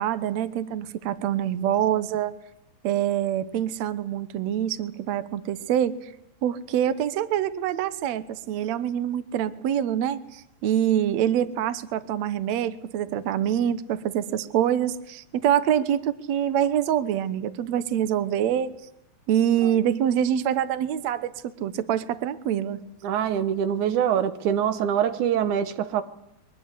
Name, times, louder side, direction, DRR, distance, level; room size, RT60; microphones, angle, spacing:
voice 1, 0.0-2.3 2.8-6.0 6.4-18.7 19.3-21.3 21.6-22.8, right 10 dB, 90° right, 12 dB, 1.5 m, -25 dB
voice 2, 23.0-26.0, right 9 dB, 65° right, 10 dB, 2.0 m, -24 dB
23.0 x 20.5 x 8.3 m, 0.78 s
omnidirectional pair, 4.7 m